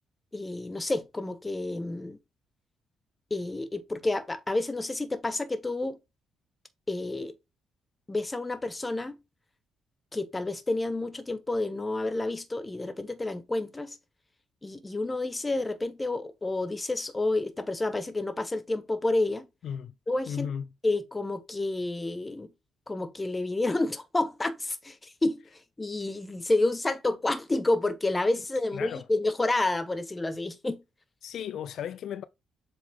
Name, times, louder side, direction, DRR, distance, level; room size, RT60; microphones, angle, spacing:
voice 1, 0.3-2.2 3.3-6.0 6.9-7.3 8.1-9.2 10.1-14.0 14.6-19.5 20.1-20.5 20.8-22.5 22.9-25.4 25.8-30.8, left 2 dB, 20° left, 1.2 m, -29 dB
voice 2, 19.6-19.9 20.3-20.7 28.7-29.1 31.2-32.2, left 8 dB, 70° left, 0.5 m, -35 dB
7.5 x 3.5 x 3.6 m
cardioid pair, 90°, 0 cm